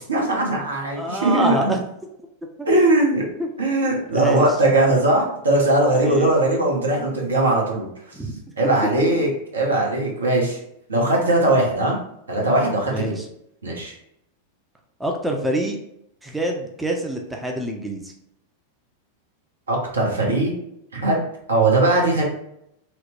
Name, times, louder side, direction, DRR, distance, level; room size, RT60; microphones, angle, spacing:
voice 1, 0.1-1.7 2.7-3.3 3.6-7.9 8.6-10.6 10.9-12.0 12.3-13.1 13.6-13.9 19.7-20.5 20.9-21.2 21.5-22.2, right 2 dB, 75° right, -2 dB, 0.7 m, -20 dB
voice 2, 1.0-1.6 3.4-3.7 4.1-4.5 5.9-6.3 8.1-8.4 9.0-9.1 12.9-13.3 15.0-15.8 16.2-18.1, right 1 dB, 5° right, 2 dB, 0.4 m, -26 dB
2.8 x 2.0 x 2.9 m, 0.78 s
figure-of-eight pair, 90°, 0 cm